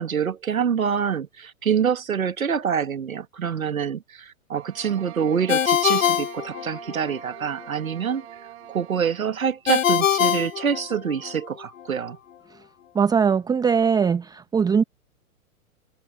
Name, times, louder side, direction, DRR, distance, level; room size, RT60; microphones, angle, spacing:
voice 1, 0.0-8.2 8.7-12.2, right 7 dB, 70° right, 2.1 m, -26 dB
sound 1, 4.5-9.4, right 16 dB, 50° right, 7.5 m, -43 dB
Ringtone, 5.5-7.2 9.7-11.3, left 10 dB, 60° left, 1.0 m, -23 dB
voice 2, 12.9-14.8, right 6 dB, 10° right, 1.0 m, -20 dB
figure-of-eight pair, 110°, 43 cm